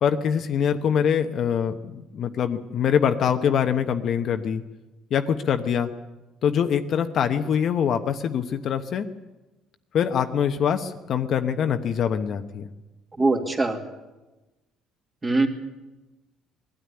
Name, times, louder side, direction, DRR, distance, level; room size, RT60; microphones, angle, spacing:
voice 1, 0.0-4.6 5.1-5.9 6.4-9.1 9.9-12.7, left 8 dB, 50° left, 7 dB, 1.0 m, -24 dB
voice 2, 13.2-13.8 15.2-15.5, right 2 dB, 20° right, 4 dB, 2.4 m, -21 dB
20.5 x 13.0 x 9.8 m, 1.1 s
cardioid pair, 135°, 0 cm